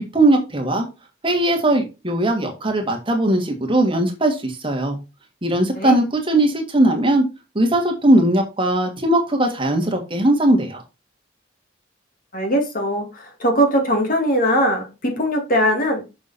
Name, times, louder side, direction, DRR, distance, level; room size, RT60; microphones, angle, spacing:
voice 1, 0.1-0.9 1.2-5.0 5.4-7.2 7.6-10.8, right 1 dB, 25° right, 1.8 m, -19 dB
voice 2, 12.3-16.1, equal, 45° left, 2.2 m, -20 dB
6.8 x 6.2 x 4.3 m
head